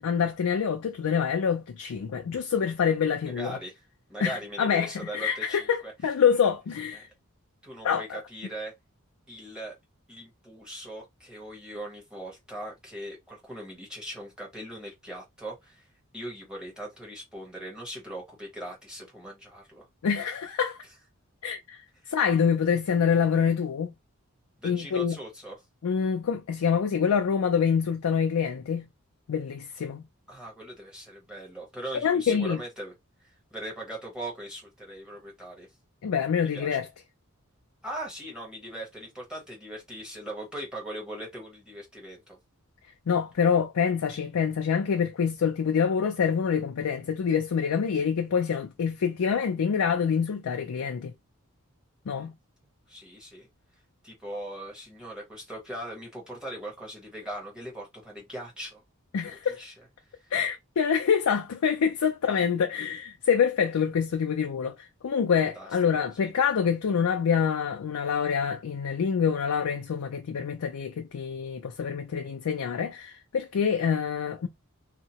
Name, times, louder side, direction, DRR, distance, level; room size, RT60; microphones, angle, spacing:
voice 1, 0.0-3.6 4.2-7.1 7.8-8.2 20.0-20.8 21.4-21.8 22.1-23.9 24.6-25.2 25.8-28.9 29.3-30.0 32.0-32.6 36.0-36.9 43.1-51.1 52.1-52.3 59.1-59.6 60.3-74.5, left 7 dB, 90° left, 0.4 m, -26 dB
voice 2, 3.2-3.8 4.1-6.1 6.9-7.0 7.6-8.7 9.3-9.7 10.1-15.9 16.1-19.8 24.6-25.6 30.3-32.9 33.2-35.7 36.5-36.8 37.8-42.4 52.1-52.3 52.9-53.5 54.0-58.8 59.6-59.7 65.3-66.3, right 1 dB, 5° right, 1.1 m, -40 dB
2.8 x 2.1 x 2.8 m
head